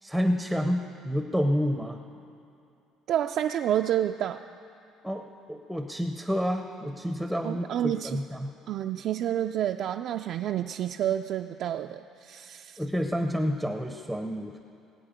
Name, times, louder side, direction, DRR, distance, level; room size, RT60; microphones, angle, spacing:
voice 1, 0.0-2.0 5.0-8.5 12.8-14.6, equal, ahead, 5 dB, 0.6 m, -29 dB
voice 2, 3.1-4.4 7.4-8.2 8.7-12.8, right 11 dB, 60° right, 4 dB, 0.3 m, -29 dB
21.0 x 8.3 x 5.1 m, 2.7 s
cardioid pair, 125°, 0 cm